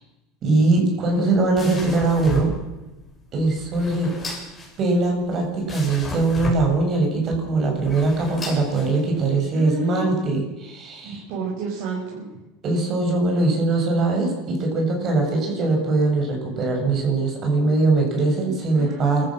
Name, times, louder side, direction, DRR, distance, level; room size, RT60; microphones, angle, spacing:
voice 1, 0.4-2.5 3.3-4.1 4.8-11.2 12.6-19.3, right 3 dB, 35° right, 2 dB, 7.3 m, -21 dB
sound 1, 1.0-9.3, left 2 dB, 15° left, 7.4 m, -34 dB
voice 2, 9.5-10.1 11.0-12.3 18.7-19.3, right 3 dB, 60° right, -3 dB, 6.6 m, -30 dB
28.0 x 14.5 x 6.6 m, 1.1 s
supercardioid pair, 135°, 0 cm